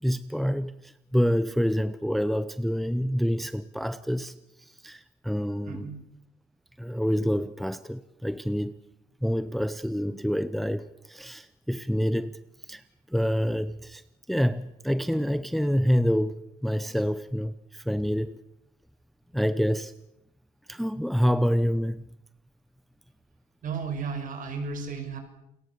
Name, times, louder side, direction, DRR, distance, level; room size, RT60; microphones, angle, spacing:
voice 1, 0.0-5.9 6.8-8.7 9.2-12.4 12.7-12.8 13.1-14.0 14.3-18.4 19.3-19.9 20.7-22.0, equal, ahead, 13 dB, 0.9 m, -27 dB
voice 2, 5.7-6.0 23.6-25.2, right 5 dB, 50° right, 8 dB, 5.6 m, -34 dB
29.0 x 21.0 x 6.9 m, 0.85 s
cardioid pair, 110°, 17 cm